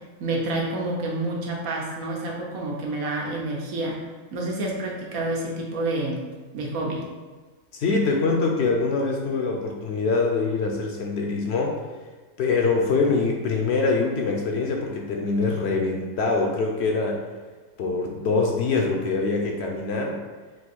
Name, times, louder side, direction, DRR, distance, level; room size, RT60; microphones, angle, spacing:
voice 1, 0.2-4.0 4.3-6.2 6.5-7.1, right 2 dB, 90° right, -2 dB, 1.3 m, -28 dB
voice 2, 7.7-11.8 12.4-17.2 17.8-20.2, left 4 dB, 65° left, 1 dB, 0.7 m, -24 dB
3.8 x 2.6 x 4.1 m, 1.3 s
omnidirectional pair, 1.4 m